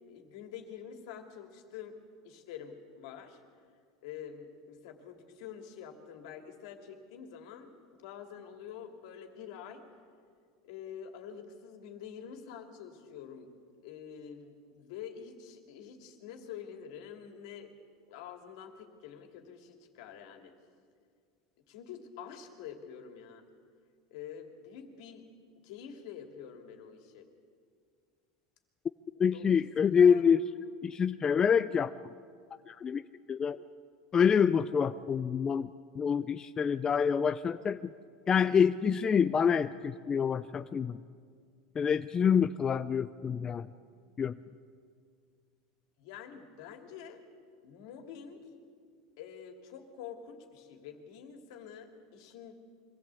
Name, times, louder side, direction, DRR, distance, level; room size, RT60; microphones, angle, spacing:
voice 1, 0.1-2.0 2.2-3.4 4.0-9.8 10.6-13.5 13.8-17.7 18.1-20.5 21.7-23.4 24.1-25.2 25.6-27.3 29.2-29.6 30.0-30.2 46.0-47.2 47.6-48.4 49.2-52.5, left 8 dB, 75° left, 5 dB, 2.7 m, -47 dB
voice 2, 29.2-30.4 30.8-31.9 32.7-33.6 34.1-35.7 36.0-37.8 38.3-41.0 41.8-43.7 44.2-44.3, left 7 dB, 25° left, 11 dB, 0.5 m, -26 dB
24.0 x 15.5 x 8.3 m, 2.1 s
supercardioid pair, 125°, 3 cm